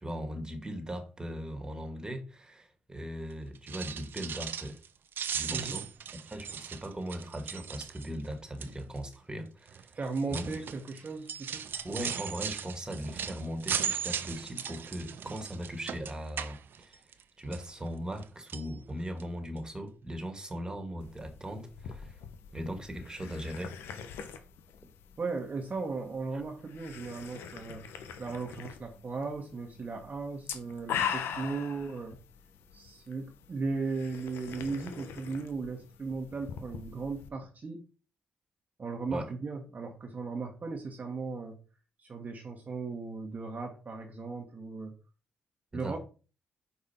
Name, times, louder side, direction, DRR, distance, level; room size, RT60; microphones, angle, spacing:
voice 1, 0.0-4.8 5.3-5.9 6.3-9.9 10.3-10.6 11.8-17.0 17.4-22.2 22.5-23.7 39.1-39.3 45.7-45.9, equal, 20° right, 6 dB, 1.9 m, -39 dB
sound 1, 3.6-4.9 5.1-8.3 8.6-9.0 9.7-17.2 17.5-18.2 18.5-18.7 19.2-19.3 19.6-19.7, right 8 dB, 65° right, 0.6 m, -37 dB
voice 2, 5.5-5.8 9.9-11.7 25.2-27.8 28.2-32.2 32.7-37.8 38.8-41.6 42.0-45.0 45.7-46.0, right 4 dB, 45° right, 2 dB, 1.2 m, -37 dB
sound 2, 21.0-37.3, left 8 dB, 80° left, 0.8 m, -42 dB
5.2 x 4.7 x 4.3 m, 0.35 s
supercardioid pair, 55°, 4 cm